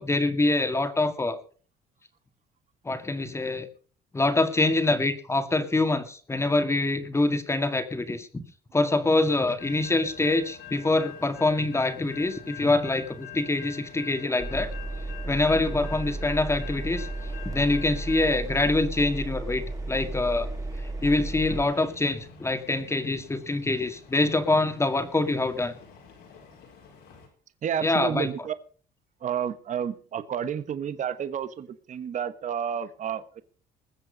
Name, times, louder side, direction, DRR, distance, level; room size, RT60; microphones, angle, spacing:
voice 1, 0.0-1.4 2.8-3.7 4.1-8.4 8.7-14.7 15.3-17.1 17.4-20.5 21.0-25.7 27.8-28.3, left 2 dB, 15° left, 9 dB, 2.0 m, -25 dB
sound 1, 9.6-27.3, left 8 dB, 85° left, 5.5 m, -47 dB
Engine, 14.4-21.7, right 2 dB, 20° right, 2.2 m, -34 dB
voice 2, 27.6-28.5 29.2-33.4, right 8 dB, 45° right, 13 dB, 1.2 m, -31 dB
21.0 x 7.8 x 5.2 m, 0.42 s
cardioid pair, 110°, 17 cm